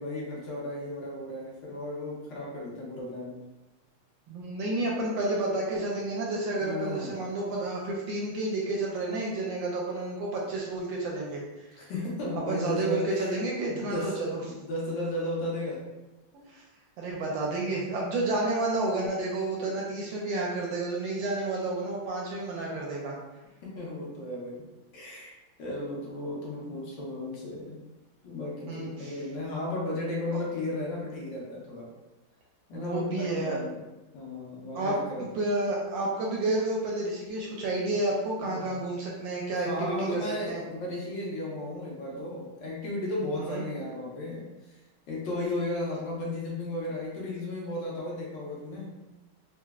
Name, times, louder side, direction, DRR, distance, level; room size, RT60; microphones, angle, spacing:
voice 1, 0.0-3.4 6.6-7.2 11.7-13.3 13.7-15.8 23.6-24.6 24.9-27.8 28.2-31.9 32.7-33.8 34.1-35.4 38.4-38.9 39.6-44.8 45.1-48.9, left 1 dB, 65° left, -4 dB, 1.3 m, -34 dB
voice 2, 4.3-11.4 12.5-14.6 16.5-16.6 17.0-23.1 28.7-29.2 30.3-30.4 32.7-33.6 34.7-34.9 35.2-40.6 43.3-43.6, right 2 dB, 75° right, -2 dB, 1.1 m, -30 dB
4.1 x 2.1 x 2.3 m, 1.1 s
omnidirectional pair, 2.3 m